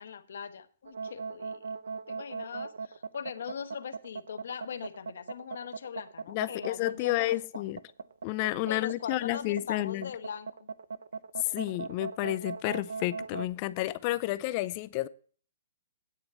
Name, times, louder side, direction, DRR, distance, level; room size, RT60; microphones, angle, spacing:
voice 1, 0.0-1.7 2.1-7.6 8.7-10.7, left 7 dB, 70° left, 1.1 m, -41 dB
sound 1, 0.9-13.5, right 5 dB, 80° right, 0.7 m, -39 dB
voice 2, 6.3-7.8 8.2-10.1 11.4-15.1, left 17 dB, 35° left, 0.5 m, -31 dB
9.4 x 8.8 x 4.4 m
hypercardioid pair, 145°, 0 cm